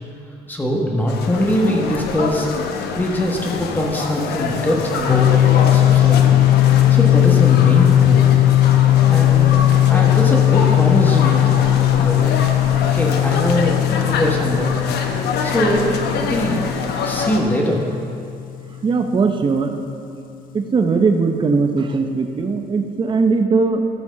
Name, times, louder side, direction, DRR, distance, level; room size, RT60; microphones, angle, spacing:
voice 1, 0.5-2.5 2.9-5.3 5.6-6.3 6.6-8.2 9.1-11.7 12.0-12.4 12.9-14.7 15.4-16.8 17.0-17.8, left 1 dB, 10° left, -1 dB, 1.3 m, -22 dB
sound 1, 1.1-17.4, left 5 dB, 75° left, 1.0 m, -25 dB
sound 2, 5.1-18.6, left 13 dB, 55° left, 0.5 m, -17 dB
voice 2, 18.8-19.8 20.5-23.9, right 4 dB, 30° right, 6 dB, 0.7 m, -19 dB
13.5 x 5.9 x 5.8 m, 2.5 s
cardioid pair, 110°, 17 cm